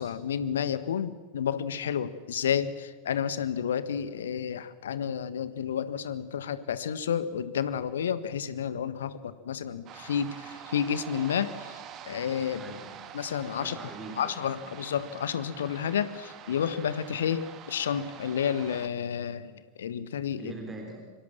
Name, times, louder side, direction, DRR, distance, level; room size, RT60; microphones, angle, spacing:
voice 1, 0.0-12.6 13.1-13.8 14.2-19.5 19.8-20.5, left 8 dB, 65° left, 13 dB, 1.5 m, -31 dB
sound 1, 9.9-18.9, right 9 dB, 35° right, 2.2 m, -46 dB
voice 2, 12.6-13.0 13.6-14.6 20.4-21.0, right 3 dB, 15° right, 3 dB, 3.5 m, -42 dB
26.0 x 24.5 x 7.4 m, 1.4 s
figure-of-eight pair, 90°, 0 cm